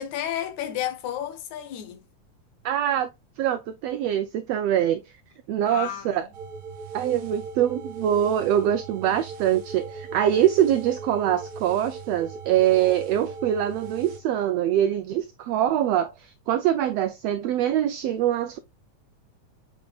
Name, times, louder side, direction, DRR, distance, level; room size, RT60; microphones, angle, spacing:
voice 1, 0.0-2.0 5.6-6.3, left 11 dB, 75° left, 2.2 m, -32 dB
voice 2, 2.6-3.1 3.4-5.0 5.5-6.3 6.9-18.6, right 11 dB, 85° right, 1.4 m, -24 dB
sound 1, 6.3-14.2, right 4 dB, 70° right, 1.2 m, -38 dB
7.8 x 5.2 x 2.3 m
omnidirectional pair, 3.5 m